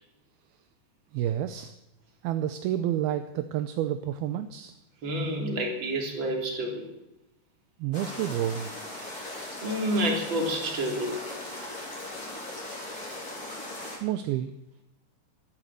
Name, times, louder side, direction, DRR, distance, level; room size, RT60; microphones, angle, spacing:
voice 1, 1.1-1.7 2.2-4.7 7.8-8.7 14.0-14.5, right 11 dB, 80° right, 10 dB, 2.3 m, -29 dB
voice 2, 5.0-6.8 9.6-11.2, equal, 30° right, 1 dB, 3.4 m, -29 dB
sound 1, 7.9-14.0, left 1 dB, 20° left, 5.1 m, -39 dB
13.5 x 12.0 x 7.7 m, 0.93 s
omnidirectional pair, 4.9 m